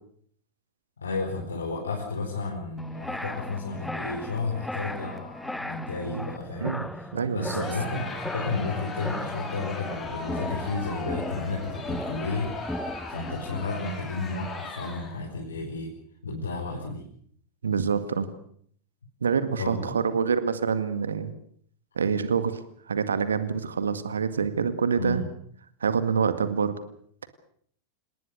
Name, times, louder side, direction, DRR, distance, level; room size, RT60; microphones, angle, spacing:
voice 1, 1.0-7.1 7.3-15.9 16.2-17.0 19.6-19.9 20.2-20.3 25.0-25.3, left 3 dB, 75° left, -1 dB, 5.0 m, -32 dB
sound 1, 2.8-13.7, left 1 dB, 5° left, 1.2 m, -37 dB
voice 2, 7.1-7.6 17.6-18.3 19.2-21.3 22.0-22.6 22.9-25.2 25.8-26.7, right 6 dB, 70° right, 11 dB, 2.0 m, -26 dB
Crowd, 7.6-15.3, left 3 dB, 20° left, 5.7 m, -38 dB
28.0 x 20.0 x 6.6 m, 0.63 s
figure-of-eight pair, 90°, 0 cm